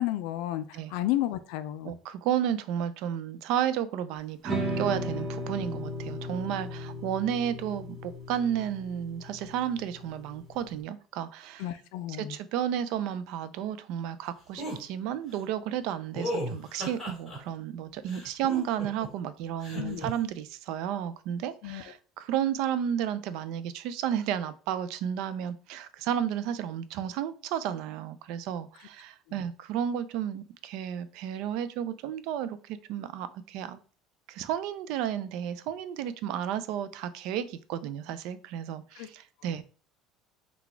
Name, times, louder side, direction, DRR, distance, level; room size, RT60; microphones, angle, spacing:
voice 1, 0.0-0.6 0.9-1.9 11.6-12.4 19.7-20.0 21.6-21.8 39.0-39.1, left 14 dB, 70° left, 12 dB, 0.4 m, -31 dB
voice 2, 1.8-11.7 12.1-33.8 34.3-39.6, right 9 dB, 60° right, 13 dB, 0.4 m, -32 dB
sound 1, 4.4-10.7, equal, 30° right, 1.0 m, -36 dB
sound 2, 14.6-14.8 16.1-17.4 18.1-19.1 19.6-20.1, right 1 dB, ahead, 1.7 m, -34 dB
4.0 x 2.3 x 4.4 m, 0.40 s
cardioid pair, 170°, 0 cm